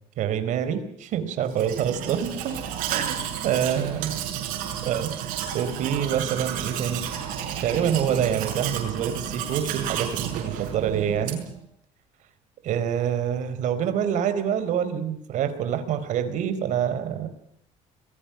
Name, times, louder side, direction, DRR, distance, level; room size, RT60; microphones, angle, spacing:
voice 1, 0.2-2.6 2.9-4.1 4.8-7.1 7.6-11.4 12.6-17.4, right 9 dB, 65° right, 10 dB, 4.4 m, -26 dB
Domestic sounds home sounds, 1.5-11.6, right 9 dB, 85° right, 6.6 m, -32 dB
27.0 x 21.0 x 6.0 m, 0.68 s
cardioid pair, 120°, 14 cm